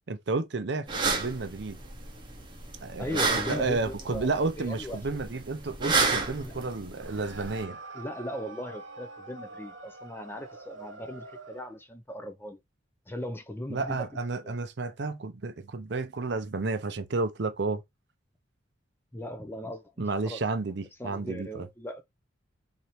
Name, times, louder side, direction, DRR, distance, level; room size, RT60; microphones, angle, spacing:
voice 1, 0.1-1.8 2.8-7.8 13.7-17.8 20.0-21.7, right 3 dB, 60° right, 0.6 m, -31 dB
sound 1, 0.9-7.6, right 3 dB, 25° right, 0.8 m, -31 dB
voice 2, 3.0-4.3 4.6-5.0 6.4-6.7 7.9-12.6 13.1-14.1 14.4-14.5 19.1-20.4 21.0-22.0, equal, 10° left, 0.5 m, -38 dB
sound 2, 6.9-11.8, right 3 dB, 85° right, 1.3 m, -46 dB
3.1 x 2.7 x 4.2 m
head